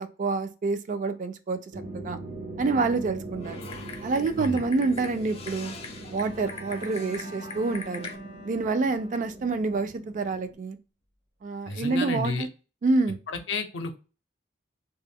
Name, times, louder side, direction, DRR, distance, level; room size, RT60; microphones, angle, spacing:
voice 1, 0.0-1.6 1.9-2.2 2.6-3.6 4.0-5.7 6.1-8.1 8.4-10.8 11.4-12.5 12.8-13.2, right 3 dB, 45° right, 0.3 m, -27 dB
sound 1, 1.7-10.5, right 2 dB, 85° right, 1.0 m, -41 dB
Typing, 3.4-8.2, left 4 dB, 35° left, 0.4 m, -42 dB
Bowed string instrument, 6.2-10.3, equal, 60° right, 0.7 m, -47 dB
voice 2, 11.7-12.5 13.5-14.0, left 3 dB, 80° left, 0.5 m, -31 dB
2.2 x 2.1 x 3.4 m
head